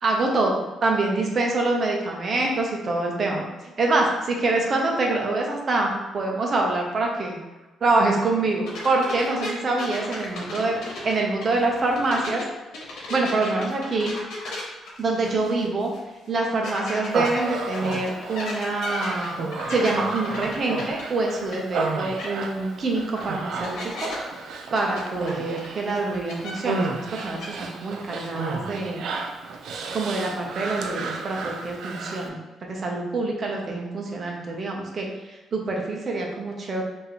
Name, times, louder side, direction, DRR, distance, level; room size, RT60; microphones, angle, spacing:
voice 1, 0.0-7.4 7.8-10.8 11.0-12.4 13.1-14.1 15.0-15.9 16.3-24.1 24.7-29.1 29.9-36.8, right 2 dB, 45° right, 0 dB, 1.0 m, -25 dB
sound 1, 8.7-12.4 12.7-15.6 15.9-16.0 16.6-21.9 22.2-22.3 23.2-23.3 23.6-24.2 24.7-26.8 27.1-27.5, left 2 dB, 80° left, 1.3 m, -35 dB
Human voice, 17.1-32.3, right 3 dB, 70° right, 0.5 m, -33 dB
4.8 x 3.1 x 3.2 m, 1.2 s
cardioid pair, 90°, 0 cm